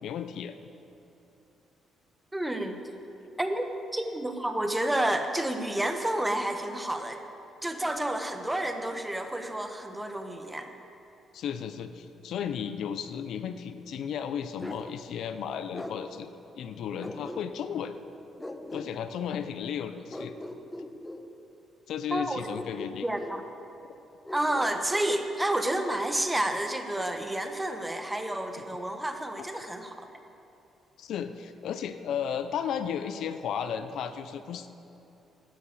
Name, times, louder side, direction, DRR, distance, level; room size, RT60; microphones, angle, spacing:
voice 1, 0.0-0.5 11.3-16.3 16.6-18.0 18.7-20.3 21.9-23.0 31.0-34.7, left 8 dB, 75° left, 10 dB, 0.7 m, -34 dB
voice 2, 2.3-2.8 3.4-3.6 3.9-7.2 7.6-10.7 22.1-22.4 23.0-23.4 24.3-30.1, right 1 dB, 10° right, 6 dB, 1.3 m, -30 dB
Bark, 14.6-14.9 15.7-16.0 17.0-17.7 18.4-18.9 20.1-21.2 22.5-23.4 24.2-25.1, left 1 dB, 10° left, 1.0 m, -40 dB
12.5 x 9.3 x 8.6 m, 3.0 s
cardioid pair, 90°, 0 cm